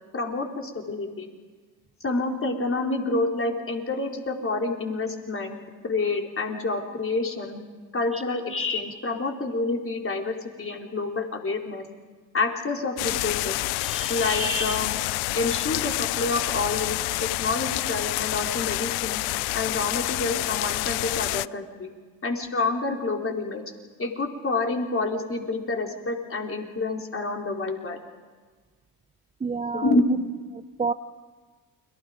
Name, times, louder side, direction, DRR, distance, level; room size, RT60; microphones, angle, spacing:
voice 1, 0.1-1.3 2.0-5.6 5.8-7.6 7.9-11.9 12.3-13.5 14.1-14.9 15.3-19.2 19.5-21.9 22.2-23.6 24.0-28.0 29.7-30.1, left 3 dB, 30° left, 2 dB, 4.2 m, -28 dB
sound 1, 13.0-21.5, left 22 dB, 65° left, 0.6 m, -28 dB
voice 2, 13.8-14.2 29.4-29.9 30.5-30.9, right 4 dB, 15° right, 12 dB, 0.7 m, -30 dB
30.0 x 23.0 x 5.2 m, 1.5 s
hypercardioid pair, 55°, 41 cm